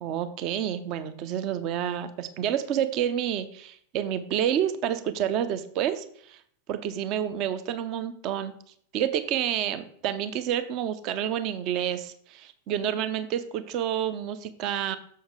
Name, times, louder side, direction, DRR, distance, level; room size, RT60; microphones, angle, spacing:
voice 1, 0.0-6.4 6.7-8.5 8.9-15.0, right 10 dB, 40° right, 13 dB, 0.6 m, -29 dB
7.0 x 6.5 x 3.7 m, 0.63 s
figure-of-eight pair, 90°, 0 cm